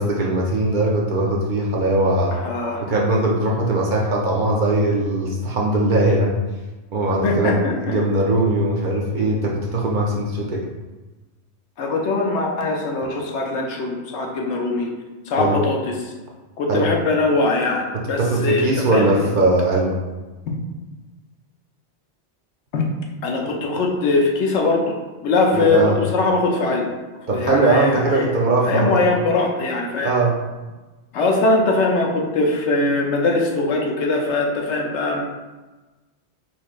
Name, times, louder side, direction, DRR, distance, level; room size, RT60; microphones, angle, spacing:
voice 1, 0.0-2.4 2.8-6.3 6.9-7.6 7.8-10.7 15.4-15.6 16.7-16.9 18.2-20.0 25.5-26.0 27.3-29.0 30.0-30.3, right 2 dB, 55° right, -2 dB, 0.6 m, -20 dB
voice 2, 2.3-2.8 7.2-8.0 11.8-14.9 15.3-16.1 16.6-19.3 20.5-20.6 22.7-22.8 23.2-25.0 25.2-26.9 27.3-28.3 28.7-30.1 31.1-35.2, left 3 dB, 90° left, 1 dB, 1.0 m, -21 dB
4.4 x 3.0 x 2.4 m, 1.2 s
omnidirectional pair, 1.2 m